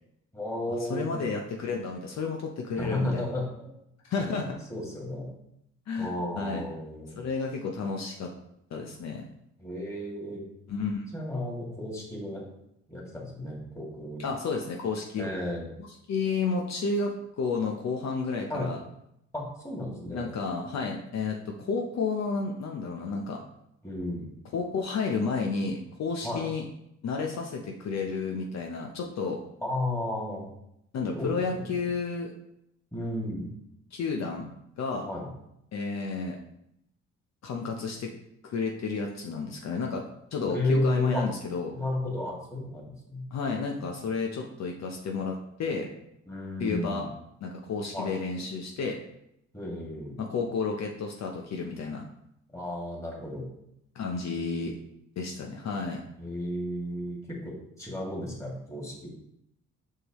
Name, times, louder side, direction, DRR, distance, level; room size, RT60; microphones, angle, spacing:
voice 1, 0.3-1.3 2.8-3.7 4.7-5.3 6.0-7.2 9.6-10.4 11.1-12.4 12.9-14.2 15.2-15.7 18.5-18.7 19.3-20.3 23.8-24.3 26.2-26.5 29.6-30.4 31.1-31.7 32.9-33.5 35.0-35.3 40.5-41.2 41.7-43.2 46.3-47.1 47.9-48.1 49.5-50.2 52.5-53.5 56.2-59.1, left 1 dB, 10° left, -3 dB, 2.3 m, -33 dB
voice 2, 0.9-3.3 4.1-4.6 5.9-6.6 7.2-8.3 8.7-9.2 10.7-11.1 14.2-15.3 16.1-18.8 20.1-23.4 24.5-26.6 27.0-29.4 30.9-32.3 33.9-34.5 34.8-35.1 35.7-36.4 37.4-38.1 38.5-40.0 40.3-41.7 43.3-45.9 46.6-47.1 47.4-49.0 50.2-52.1 53.9-54.7 55.2-56.0, left 4 dB, 60° left, 1 dB, 0.9 m, -31 dB
6.6 x 5.7 x 3.1 m, 0.77 s
cardioid pair, 90°, 30 cm